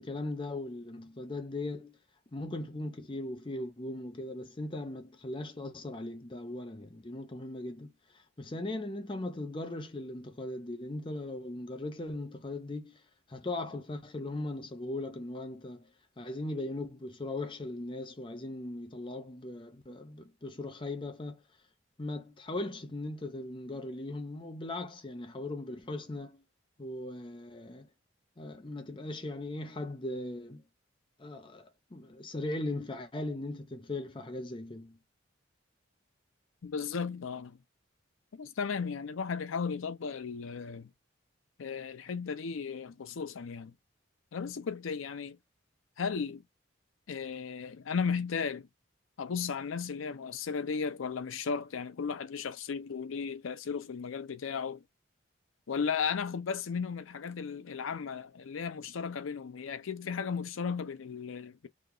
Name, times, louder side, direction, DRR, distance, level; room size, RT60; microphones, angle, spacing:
voice 1, 0.0-2.0 2.3-13.0 13.3-15.9 16.2-21.4 22.0-26.4 26.8-27.9 28.4-30.6 31.2-35.0, left 2 dB, 25° left, 0.5 m, -39 dB
voice 2, 36.6-37.6 38.3-40.9 41.6-43.7 44.3-45.4 46.0-46.4 47.1-48.7 49.2-54.8 55.7-61.7, left 6 dB, 85° left, 0.5 m, -35 dB
2.9 x 2.3 x 3.7 m
head